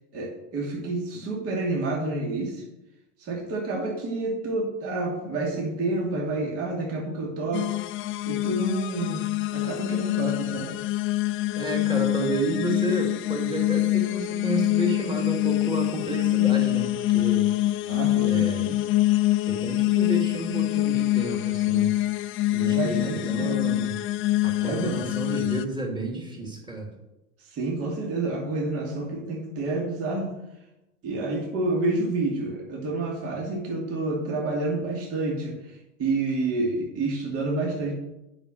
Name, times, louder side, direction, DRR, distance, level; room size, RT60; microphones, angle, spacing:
voice 1, 0.1-2.6 3.2-7.8 8.3-9.3 9.5-10.7 17.9-18.8 22.7-23.6 24.6-25.0 27.5-30.3 31.0-37.9, right 2 dB, 40° right, -1 dB, 2.6 m, -29 dB
sound 1, 7.5-25.6, left 17 dB, 35° left, 0.6 m, -25 dB
voice 2, 11.6-17.5 18.3-18.8 19.4-21.9 22.5-24.0 24.4-26.9, right 2 dB, 10° right, 1 dB, 2.5 m, -31 dB
8.7 x 5.9 x 6.5 m, 0.93 s
hypercardioid pair, 100°, 37 cm